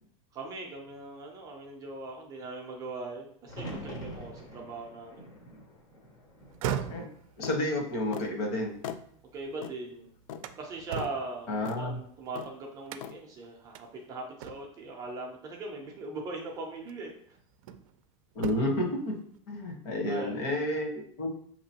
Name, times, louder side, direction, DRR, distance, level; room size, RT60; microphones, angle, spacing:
voice 1, 0.3-5.3 9.3-10.1 10.6-17.4 20.1-20.4, right 3 dB, 20° right, 0 dB, 0.5 m, -40 dB
sound 1, 3.5-7.5 7.9-8.6 10.5-11.0, equal, 20° left, 0.6 m, -45 dB
sound 2, 6.4-9.5 9.9-12.3 12.9-13.3 13.7-13.9 14.4-14.9 16.1-16.3 16.9-18.0 18.3-18.9, right 8 dB, 85° right, 0.4 m, -39 dB
sound 3, 7.4-7.6 8.1-8.3 8.8-9.0 9.6-9.8 10.3-10.5 11.0-11.1 11.7-11.8 12.4-12.5 13.0-13.2, left 8 dB, 75° left, 0.4 m, -39 dB
voice 2, 7.4-8.7 11.5-12.0 18.3-19.1 19.5-21.3, left 1 dB, 55° left, 1 dB, 1.2 m, -30 dB
6.4 x 2.9 x 2.8 m, 0.63 s
supercardioid pair, 180°, 17 cm